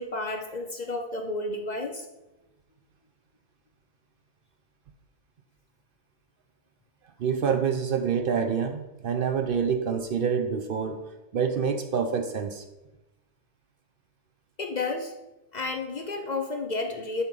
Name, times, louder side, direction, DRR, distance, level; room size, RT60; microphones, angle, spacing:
voice 1, 0.0-2.1 14.6-15.1 15.5-17.2, left 3 dB, 50° left, 3 dB, 0.6 m, -31 dB
voice 2, 7.2-11.1 11.3-12.6, right 6 dB, 60° right, 6 dB, 0.7 m, -27 dB
7.8 x 2.9 x 5.3 m, 1.0 s
omnidirectional pair, 1.2 m